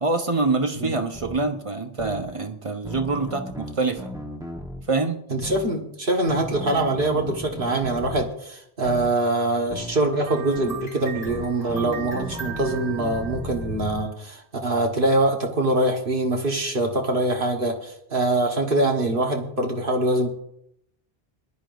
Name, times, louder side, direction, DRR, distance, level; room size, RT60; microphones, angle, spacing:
voice 1, 0.0-4.1 4.9-5.2, right 3 dB, 35° right, 6 dB, 1.0 m, -25 dB
sound 1, 1.1-1.4 2.0-2.2 2.8-4.8 5.4-5.7 6.3-8.2 8.8-9.1 9.7-10.0 10.6-10.8 11.2-14.0, equal, 5° right, 1.1 m, -36 dB
voice 2, 5.3-20.3, right 2 dB, 60° right, 1 dB, 1.6 m, -24 dB
sound 2, 10.2-14.0, right 7 dB, 85° left, 4.1 m, -38 dB
21.0 x 11.0 x 2.6 m, 0.74 s
omnidirectional pair, 1.0 m